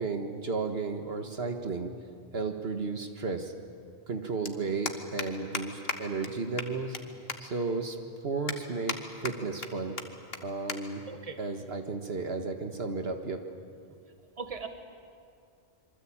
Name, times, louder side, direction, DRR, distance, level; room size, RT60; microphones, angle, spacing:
voice 1, 0.0-1.9 2.3-3.5 4.1-7.0 7.4-8.0 8.2-9.0 9.2-10.0 10.4-11.0 11.4-13.4, right 4 dB, 70° right, 5 dB, 1.8 m, -33 dB
sound 1, 2.2-2.3 3.7-3.8 3.9-4.1 4.4-4.5 4.9-5.3 5.5-5.6 5.9-6.0 6.2-6.3 6.6-7.0 7.3-7.4 7.9-8.0 8.5-9.0 9.2-9.7 10.0-10.1 10.3-10.4 10.7-10.8 11.1-11.3 12.1-12.4, left 4 dB, 65° left, 1.8 m, -34 dB
voice 2, 11.1-11.4 14.4-14.7, right 5 dB, 35° right, 6 dB, 1.7 m, -38 dB
26.5 x 24.0 x 8.8 m, 2.4 s
omnidirectional pair, 1.1 m